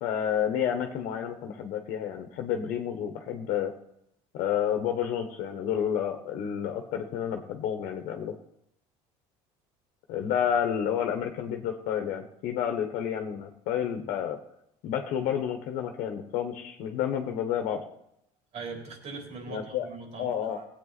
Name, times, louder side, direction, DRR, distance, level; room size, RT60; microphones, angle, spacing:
voice 1, 0.0-3.7 4.3-8.4 10.1-14.4 14.8-17.8 19.5-19.9 20.2-20.6, left 9 dB, 70° left, 4 dB, 1.4 m, -30 dB
voice 2, 18.5-20.6, right 4 dB, 55° right, 1 dB, 3.9 m, -41 dB
18.0 x 8.4 x 4.2 m, 0.76 s
supercardioid pair, 105°, 14 cm